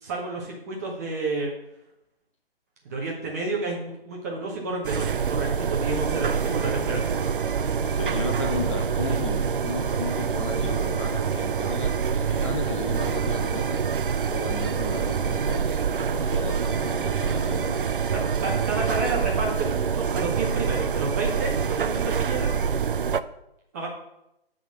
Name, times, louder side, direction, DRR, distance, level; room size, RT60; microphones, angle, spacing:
voice 1, 0.0-1.5 2.9-7.2 9.1-9.2 18.1-22.5 23.7-23.9, right 3 dB, 15° right, -2 dB, 0.8 m, -30 dB
sound 1, 4.8-23.2, right 6 dB, 60° right, 0.4 m, -26 dB
voice 2, 7.7-13.8 14.3-17.8, left 4 dB, 30° left, 3 dB, 1.0 m, -34 dB
8.2 x 3.8 x 6.3 m, 0.83 s
figure-of-eight pair, 145°, 30 cm